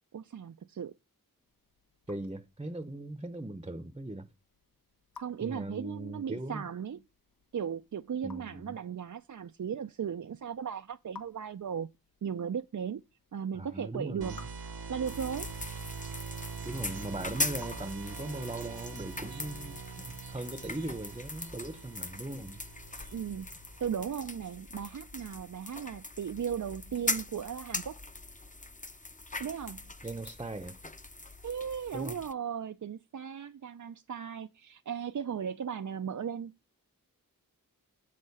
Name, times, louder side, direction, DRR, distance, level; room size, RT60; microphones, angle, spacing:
voice 1, 0.1-0.9 5.2-7.0 7.5-11.9 12.2-13.0 13.3-14.3 14.9-15.5 23.1-23.5 23.8-28.0 29.4-29.9 31.4-36.5, right 7 dB, 55° right, 0.5 m, -36 dB
Raindrop / Drip, 1.3-18.5, left 5 dB, 80° left, 1.4 m, -59 dB
voice 2, 2.1-4.3 5.4-6.6 8.2-8.7 13.5-14.5 16.6-19.8 20.3-22.6 30.0-30.8 31.9-32.2, right 2 dB, 15° right, 0.8 m, -39 dB
sound 1, 14.2-23.9, right 5 dB, 80° right, 1.0 m, -44 dB
sound 2, 15.1-32.3, left 2 dB, 20° left, 0.8 m, -41 dB
7.6 x 6.5 x 5.4 m
wide cardioid pair, 50°, 35 cm